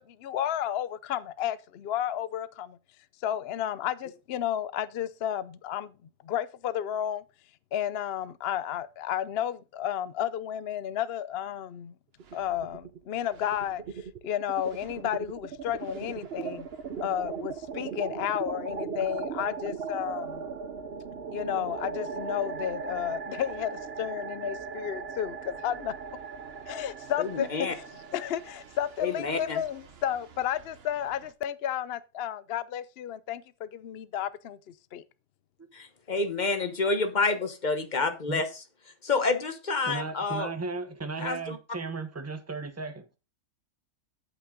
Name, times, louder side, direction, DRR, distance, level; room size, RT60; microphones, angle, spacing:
voice 1, 0.0-2.8 3.2-5.9 6.2-7.2 7.7-11.9 12.3-16.7 17.0-20.4 21.3-25.9 26.7-27.8 28.1-35.0, left 10 dB, 60° left, 0.6 m, -32 dB
sound 1, 12.2-13.0 13.3-31.3, right 6 dB, 45° right, 1.0 m, -39 dB
voice 2, 27.2-27.7 29.0-29.6 35.7-38.5 39.0-40.5 41.2-41.6, left 3 dB, 30° left, 1.2 m, -28 dB
voice 3, 39.8-43.1, right 4 dB, 15° right, 0.7 m, -35 dB
8.7 x 8.3 x 3.8 m
omnidirectional pair, 1.6 m